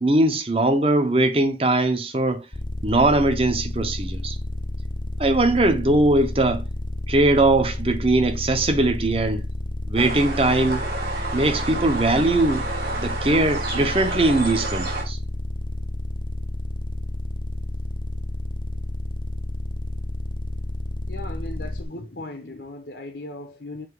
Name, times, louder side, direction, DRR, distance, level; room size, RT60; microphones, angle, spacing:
voice 1, 0.0-2.5 2.8-4.4 5.2-6.6 7.1-9.5 9.9-10.8 11.3-12.7 13.0-15.2, right 2 dB, 30° right, 0.9 m, -20 dB
sound 1, 2.5-21.8, left 1 dB, 30° left, 0.6 m, -30 dB
sound 2, 9.9-15.0, right 3 dB, 65° right, 3.3 m, -30 dB
voice 2, 21.1-23.9, left 2 dB, 75° left, 1.0 m, -37 dB
7.4 x 2.9 x 4.8 m
head